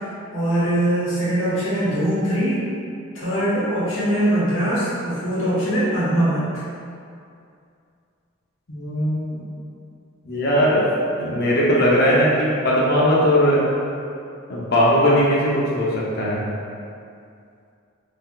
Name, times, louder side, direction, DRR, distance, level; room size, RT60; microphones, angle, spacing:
voice 1, 0.3-2.7 3.1-6.6, right 1 dB, 70° left, -9 dB, 1.1 m, -22 dB
voice 2, 8.7-9.4 10.3-10.8 11.2-13.6 14.5-16.4, equal, 50° left, -6 dB, 0.6 m, -19 dB
3.8 x 2.8 x 2.2 m, 2.5 s
head